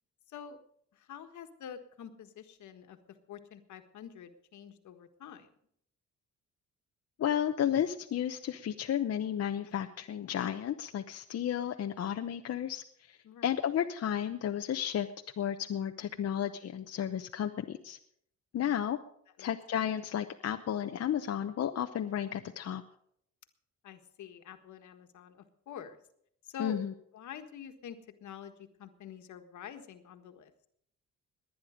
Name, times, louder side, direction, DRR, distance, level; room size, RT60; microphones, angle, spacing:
voice 1, 0.9-3.0 3.3-5.5 13.2-13.5 16.2-16.3 18.5-18.9 19.4-19.5 23.8-26.0 26.4-26.8 27.1-30.5, left 8 dB, 70° left, 7 dB, 1.6 m, -47 dB
voice 2, 7.2-15.1 15.4-18.0 18.5-19.0 19.4-22.8 26.6-26.9, left 9 dB, 55° left, 6 dB, 0.8 m, -33 dB
19.0 x 10.5 x 5.1 m, 0.69 s
cardioid pair, 90°, 30 cm